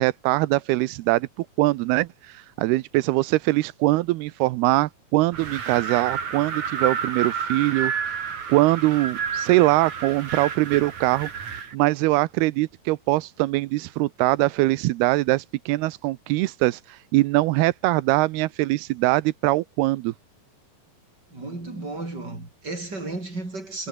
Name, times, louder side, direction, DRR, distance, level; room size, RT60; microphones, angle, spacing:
voice 1, 0.0-7.9 8.5-11.3 11.7-20.1, right 19 dB, 90° right, 2.7 m, -22 dB
Wind, 5.3-11.8, right 6 dB, 50° right, 4.3 m, -30 dB
voice 2, 21.3-23.9, right 2 dB, 25° right, 7.1 m, -33 dB
omnidirectional pair, 4.5 m